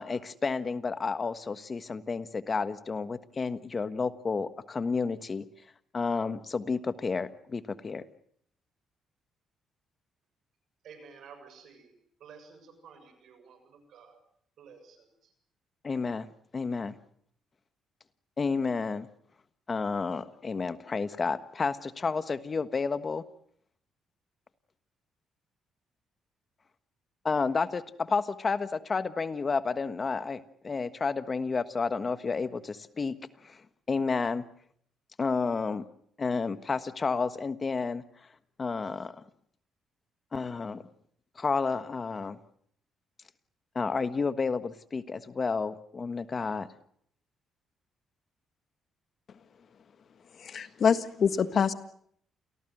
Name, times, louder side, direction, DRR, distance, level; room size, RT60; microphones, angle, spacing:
voice 1, 0.0-5.5 5.9-8.0 15.8-16.3 16.5-17.0 18.4-19.1 19.7-23.2 27.2-33.2 33.4-33.6 33.9-34.5 35.2-35.8 36.2-38.0 38.6-39.1 40.3-40.8 41.4-42.4 43.7-46.7, left 4 dB, 35° left, 13 dB, 1.3 m, -31 dB
voice 2, 10.8-11.9 12.2-14.2 14.6-15.3, right 6 dB, 70° right, 8 dB, 7.2 m, -52 dB
voice 3, 50.4-51.7, left 6 dB, 55° left, 12 dB, 1.6 m, -25 dB
28.5 x 18.5 x 7.9 m, 0.66 s
cardioid pair, 90°, 0 cm